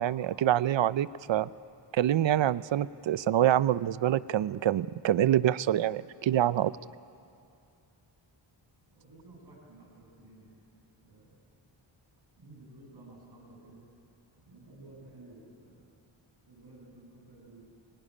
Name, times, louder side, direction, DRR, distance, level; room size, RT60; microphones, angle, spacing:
voice 1, 0.0-1.5 1.9-6.7, right 11 dB, 70° right, 18 dB, 0.6 m, -26 dB
voice 2, 8.9-10.6 11.0-11.4 12.4-13.8 14.4-15.9 16.5-17.7, right 2 dB, 55° right, -3 dB, 7.9 m, -53 dB
24.5 x 18.0 x 9.9 m, 2.6 s
wide cardioid pair, 145°, 47 cm